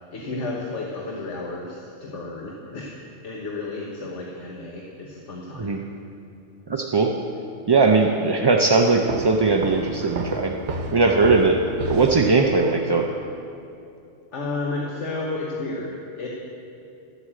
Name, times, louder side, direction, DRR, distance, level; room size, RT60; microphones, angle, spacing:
voice 1, 0.0-2.9 3.2-5.8 14.3-16.3, left 2 dB, 85° left, -2 dB, 1.5 m, -32 dB
voice 2, 6.7-7.1 7.7-10.5 10.9-11.6 11.9-13.1, right 3 dB, 35° right, 2 dB, 0.4 m, -19 dB
sound 1, 9.1-12.8, right 1 dB, 80° right, 1.2 m, -32 dB
12.0 x 8.2 x 7.6 m, 2.6 s
omnidirectional pair, 1.2 m